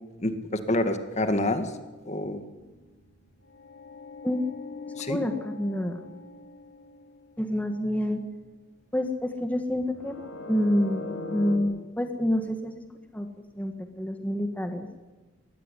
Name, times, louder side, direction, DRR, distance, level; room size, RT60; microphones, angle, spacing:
voice 1, 0.2-1.7 2.1-2.4 5.0-5.2, left 1 dB, 35° left, 8 dB, 1.9 m, -27 dB
sound 1, 2.6-7.5 10.0-11.6, left 3 dB, 85° left, 3.4 m, -40 dB
voice 2, 5.1-6.0 7.4-8.2 8.9-10.2 10.5-11.0 11.3-12.7 13.1-13.3 13.6-14.9, left 1 dB, 10° left, 5 dB, 1.6 m, -27 dB
22.5 x 18.0 x 10.0 m, 1.2 s
head